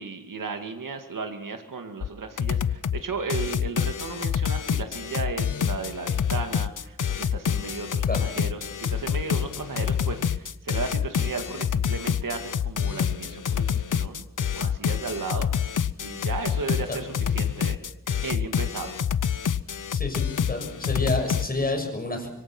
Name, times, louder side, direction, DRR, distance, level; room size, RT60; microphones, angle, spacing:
voice 1, 0.0-14.2 14.6-15.5 16.0-17.8 18.2-18.9, right 4 dB, 75° right, 5 dB, 2.2 m, -35 dB
sound 1, 2.0-2.1 2.4-3.0 3.3-21.5, left 8 dB, 70° left, 0.8 m, -27 dB
voice 2, 19.9-22.3, left 2 dB, 25° left, 4 dB, 6.6 m, -29 dB
25.5 x 23.5 x 6.1 m, 0.79 s
wide cardioid pair, 100°, 32 cm